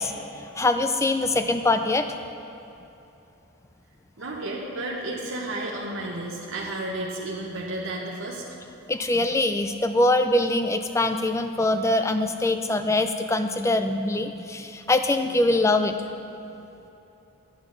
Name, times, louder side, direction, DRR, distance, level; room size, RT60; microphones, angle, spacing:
voice 1, 0.0-2.1 8.9-15.9, left 2 dB, 15° left, 8 dB, 0.3 m, -23 dB
voice 2, 4.2-8.4, right 2 dB, 60° right, -4 dB, 1.0 m, -32 dB
11.0 x 9.0 x 3.9 m, 3.0 s
head